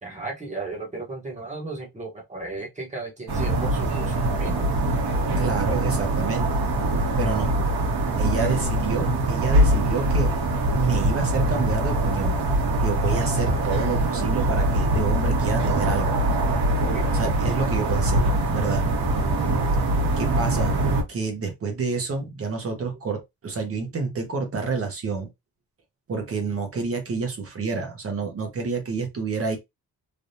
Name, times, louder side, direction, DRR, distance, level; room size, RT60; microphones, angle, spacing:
voice 1, 0.0-4.8 8.3-8.6 16.8-17.1 19.4-19.7, right 3 dB, 20° right, 1.1 m, -35 dB
sound 1, 3.3-21.0, right 1 dB, 75° right, 1.5 m, -23 dB
voice 2, 5.4-6.6 7.2-7.6 8.2-10.3 10.7-12.4 12.8-16.1 17.1-18.2 18.5-18.9 20.2-20.7 21.1-25.3 26.1-29.6, right 4 dB, 35° right, 0.9 m, -28 dB
3.4 x 2.4 x 2.7 m
cardioid pair, 155°, 39 cm